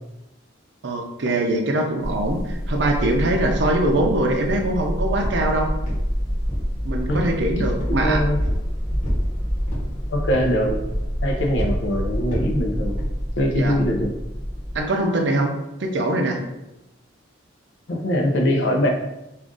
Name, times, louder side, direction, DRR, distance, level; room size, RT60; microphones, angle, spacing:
voice 1, 0.8-5.7 6.8-8.2 13.6-13.8 14.7-15.5 15.8-16.4, right 1 dB, 65° right, 3 dB, 0.5 m, -22 dB
sound 1, 2.0-14.8, equal, 20° left, 0.7 m, -27 dB
sound 2, 3.9-4.1 4.5-4.8 5.2-5.5 5.8-6.7 7.1-7.4 7.8-8.0 8.4-8.6 9.0-9.3 9.7-9.9 10.3-10.6 10.9-11.2 11.6-11.8 12.3-12.6 13.0-13.2 13.7-13.8, equal, 40° left, 1.0 m, -32 dB
voice 2, 7.9-8.4 10.1-10.8 11.2-13.0 13.4-14.1 17.9-18.9, equal, 70° left, 2 dB, 0.6 m, -22 dB
2.5 x 2.4 x 3.7 m, 0.92 s
head